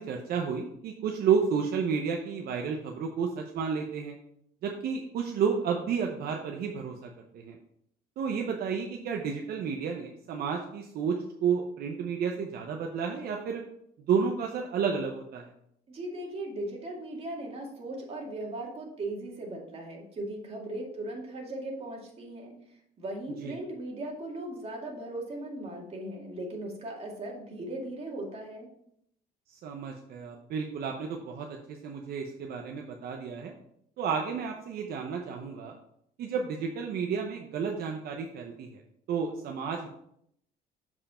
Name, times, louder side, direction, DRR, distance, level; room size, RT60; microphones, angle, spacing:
voice 1, 0.0-4.2 4.6-7.6 8.2-13.6 14.1-15.5 23.4-23.5 29.5-33.5 34.0-35.7 36.2-38.8 39.1-39.9, right 6 dB, 65° right, 2 dB, 0.9 m, -31 dB
voice 2, 15.9-22.5 23.0-28.7, right 1 dB, 35° right, -1 dB, 2.2 m, -38 dB
7.6 x 4.8 x 4.3 m, 0.72 s
cardioid pair, 110°, 17 cm